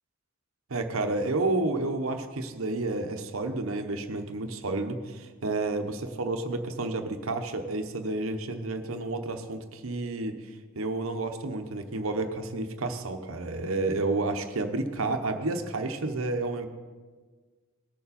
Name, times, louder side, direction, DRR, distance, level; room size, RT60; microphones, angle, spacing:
voice 1, 0.7-10.4 10.8-16.7, right 2 dB, 90° right, 6 dB, 1.0 m, -30 dB
19.0 x 7.0 x 4.2 m, 1.5 s
head